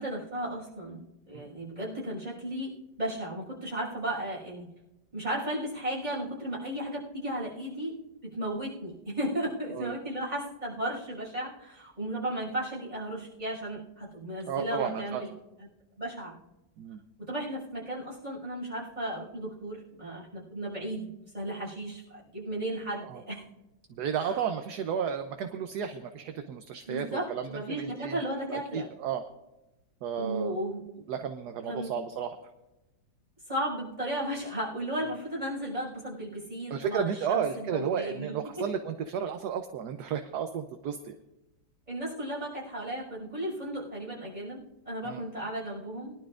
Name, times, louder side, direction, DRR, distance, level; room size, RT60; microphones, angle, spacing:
voice 1, 0.0-4.7 5.1-7.9 8.3-15.3 16.0-16.3 17.2-23.4 24.2-24.4 26.9-28.9 30.2-31.0 31.7-31.9 33.5-38.6 41.9-46.1, right 1 dB, 20° right, -6 dB, 6.0 m, -35 dB
voice 2, 14.5-15.2 16.8-17.0 23.0-23.2 23.9-28.2 28.5-29.2 30.0-30.5 31.1-32.4 36.7-41.2 45.0-45.3, right 7 dB, 65° right, 7 dB, 1.2 m, -33 dB
22.0 x 11.5 x 2.5 m, 0.97 s
omnidirectional pair, 2.0 m